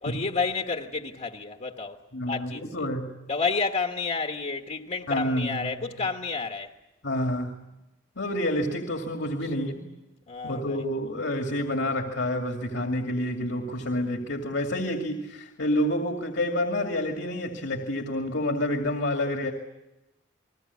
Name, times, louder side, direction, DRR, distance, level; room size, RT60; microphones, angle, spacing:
voice 1, 0.0-2.9 3.3-6.7 9.4-9.5 10.3-10.8, left 4 dB, 40° left, 1.4 m, -30 dB
voice 2, 2.1-3.2 5.1-5.7 7.0-7.6 8.2-9.9 10.4-19.5, left 1 dB, 75° left, 2.5 m, -28 dB
30.0 x 21.0 x 8.4 m
head